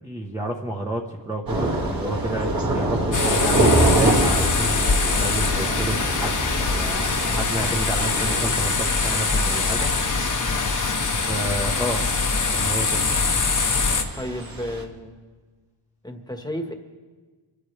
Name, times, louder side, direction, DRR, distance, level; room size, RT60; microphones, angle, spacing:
voice 1, 0.0-6.3 6.6-9.9 11.2-12.0 12.5-13.1, right 1 dB, 5° right, -2 dB, 1.1 m, -30 dB
Thunder / Rain, 1.5-14.8, right 1 dB, 45° right, 2.3 m, -27 dB
sound 1, 3.1-14.0, left 4 dB, 40° left, 1.1 m, -23 dB
voice 2, 14.2-15.2 16.0-16.7, equal, 10° left, 4 dB, 1.5 m, -32 dB
26.5 x 13.5 x 3.4 m, 1.4 s
wide cardioid pair, 135°, 48 cm